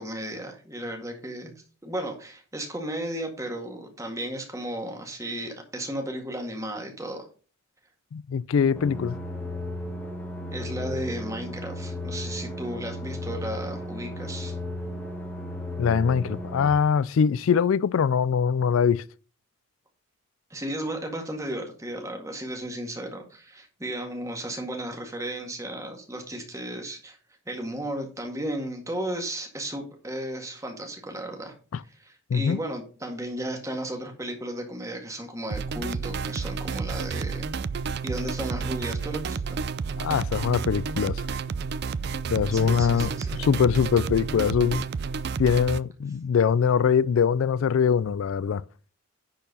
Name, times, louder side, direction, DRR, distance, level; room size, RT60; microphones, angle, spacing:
voice 1, 0.0-7.3 10.5-14.6 20.5-27.2 27.5-31.5 31.9-37.5 38.0-39.6 42.5-43.4, right 1 dB, 15° right, 1.9 m, -34 dB
voice 2, 8.1-9.2 15.8-19.0 31.7-31.8 32.3-32.6 40.0-41.2 42.3-43.1 43.4-44.9 45.4-48.6, left 6 dB, 80° left, 0.3 m, -23 dB
sound 1, 8.7-16.7, left 1 dB, 5° left, 1.8 m, -35 dB
sound 2, 35.5-45.8, right 5 dB, 50° right, 0.4 m, -31 dB
10.5 x 4.6 x 5.3 m
head